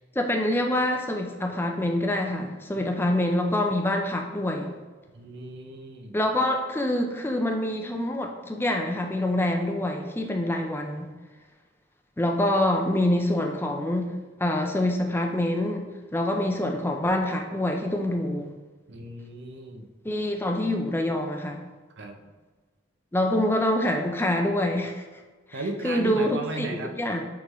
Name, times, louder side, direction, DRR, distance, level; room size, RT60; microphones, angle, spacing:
voice 1, 0.1-4.7 6.1-11.1 12.2-14.1 14.4-18.5 20.0-21.6 23.1-25.0 25.5-27.2, left 1 dB, 10° left, 3 dB, 0.5 m, -26 dB
voice 2, 5.1-6.1 18.9-19.9 22.0-22.3 25.5-26.9, right 2 dB, 60° right, 4 dB, 0.7 m, -36 dB
8.2 x 3.8 x 3.1 m, 1.3 s
head